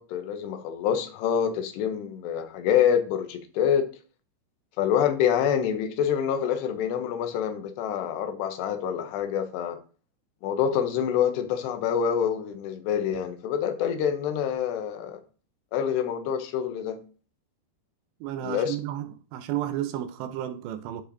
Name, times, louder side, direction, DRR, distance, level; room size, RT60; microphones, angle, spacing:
voice 1, 0.0-3.9 4.8-9.8 10.4-15.2 15.7-17.0 18.4-18.8, left 8 dB, 85° left, 3.0 m, -26 dB
voice 2, 18.2-21.0, right 12 dB, 90° right, 2.9 m, -32 dB
12.5 x 4.3 x 2.7 m
omnidirectional pair, 4.8 m